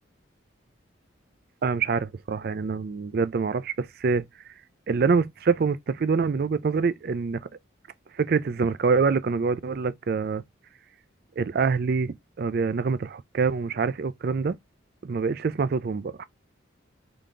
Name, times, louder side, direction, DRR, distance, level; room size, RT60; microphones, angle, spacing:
voice 1, 1.6-4.3 4.9-7.4 8.2-10.4 11.4-14.6 15.0-16.2, right 5 dB, 50° right, 0.4 m, -25 dB
3.9 x 3.6 x 3.2 m
head